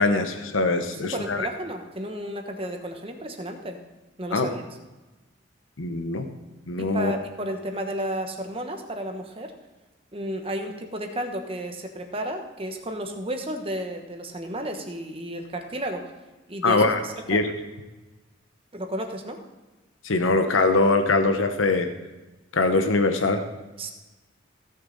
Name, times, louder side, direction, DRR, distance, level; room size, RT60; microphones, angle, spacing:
voice 1, 0.0-1.5 4.3-4.5 5.8-6.2 6.7-7.1 16.6-17.0 17.3-17.5 20.0-21.9 22.5-23.4, left 3 dB, 90° left, 7 dB, 0.9 m, -22 dB
voice 2, 0.9-3.8 4.2-4.6 6.8-9.5 10.1-16.1 16.5-17.4 18.7-19.4 23.8-23.9, right 1 dB, 30° right, 5 dB, 1.1 m, -32 dB
16.5 x 6.6 x 4.1 m, 1.1 s
head